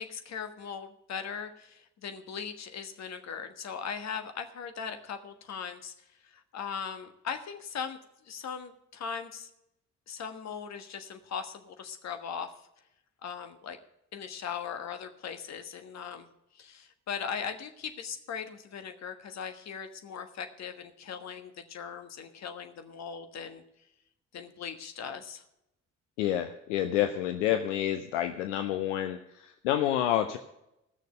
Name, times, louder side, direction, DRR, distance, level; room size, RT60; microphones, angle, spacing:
voice 1, 0.0-5.9 6.3-8.0 8.2-9.5 10.1-12.5 13.2-13.8 14.1-16.3 16.5-23.6 24.3-25.4, left 7 dB, 45° left, 8 dB, 1.4 m, -39 dB
voice 2, 26.2-30.4, left 11 dB, 70° left, 7 dB, 0.7 m, -29 dB
15.0 x 6.6 x 6.5 m, 0.84 s
figure-of-eight pair, 45°, 37 cm